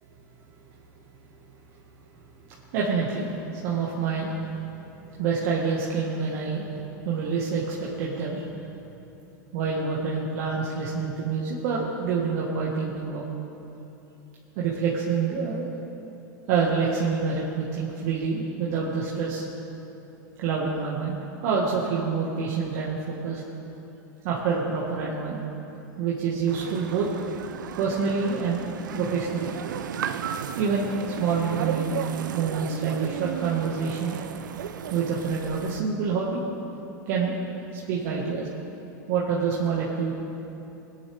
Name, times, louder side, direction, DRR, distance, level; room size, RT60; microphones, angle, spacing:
voice 1, 2.7-4.4 4.7-4.8 5.2-8.5 9.5-13.2 14.6-15.7 16.5-19.4 20.4-21.2 21.4-23.4 24.2-25.4 26.0-27.1 27.8-29.5 30.6-30.9 31.2-32.0 32.3-34.2 34.9-36.4 37.1-37.3 37.7-38.5 39.1-40.1, right 5 dB, 60° right, -4 dB, 1.7 m, -27 dB
sound 1, 26.5-35.8, right 8 dB, 85° right, 0.6 m, -35 dB
19.5 x 10.0 x 3.5 m, 3.0 s
hypercardioid pair, 105°, 10 cm